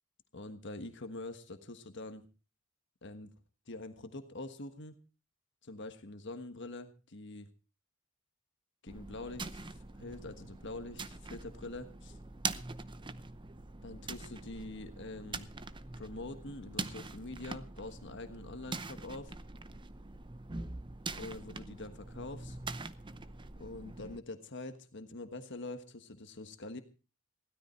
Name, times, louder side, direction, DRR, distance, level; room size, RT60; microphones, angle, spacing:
voice 1, 0.3-2.2 3.0-3.3 3.7-4.9 5.6-7.5 8.8-12.1 13.8-15.5 16.0-19.3 21.1-22.6 23.6-26.8, left 2 dB, 60° left, 8 dB, 1.4 m, -45 dB
sound 1, 8.9-24.2, right 3 dB, 25° right, 0.7 m, -43 dB
16.5 x 12.5 x 4.4 m, 0.35 s
head